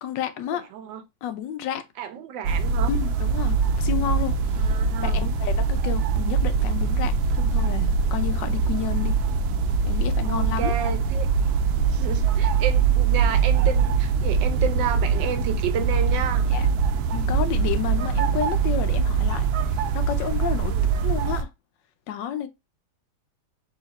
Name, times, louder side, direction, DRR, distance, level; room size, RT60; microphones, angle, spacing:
voice 1, 0.0-0.7 1.2-1.9 2.9-4.8 5.0-9.2 9.9-10.7 16.5-16.7 17.1-20.7 21.0-21.5 22.1-22.5, left 9 dB, 85° left, 1.3 m, -31 dB
voice 2, 0.5-1.0 2.0-2.9 4.6-5.2 10.2-11.3 11.8-16.5 20.7-20.9, right 8 dB, 90° right, 1.5 m, -31 dB
sound 1, 2.4-21.4, right 5 dB, 70° right, 1.0 m, -23 dB
4.0 x 2.9 x 4.0 m
omnidirectional pair, 1.9 m